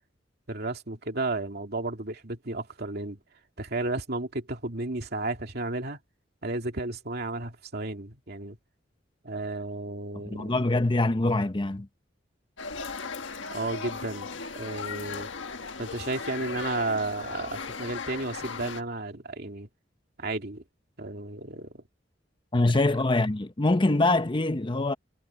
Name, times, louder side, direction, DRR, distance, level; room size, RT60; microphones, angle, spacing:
voice 1, 0.5-3.2 3.6-6.0 6.4-8.6 9.2-10.5 13.5-15.3 15.8-19.7 20.2-20.6 21.0-21.8 22.7-22.8, right 2 dB, 60° right, 2.7 m, -33 dB
voice 2, 10.3-11.9 22.5-24.9, left 2 dB, 25° left, 0.8 m, -24 dB
sound 1, 12.6-18.8, left 4 dB, 85° left, 1.5 m, -37 dB
head